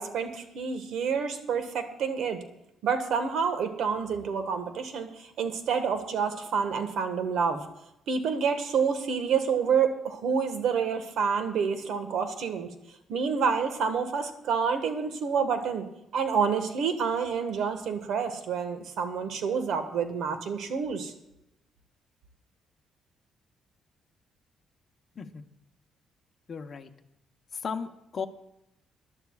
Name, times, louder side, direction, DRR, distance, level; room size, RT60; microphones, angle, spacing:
voice 1, 0.0-2.4 2.8-7.6 8.1-12.7 13.1-15.9 16.1-21.1, right 6 dB, 75° right, 7 dB, 1.5 m, -28 dB
voice 2, 26.5-26.9 27.5-28.3, left 6 dB, 45° left, 5 dB, 0.9 m, -35 dB
22.5 x 11.5 x 2.4 m, 0.84 s
cardioid pair, 90°, 0 cm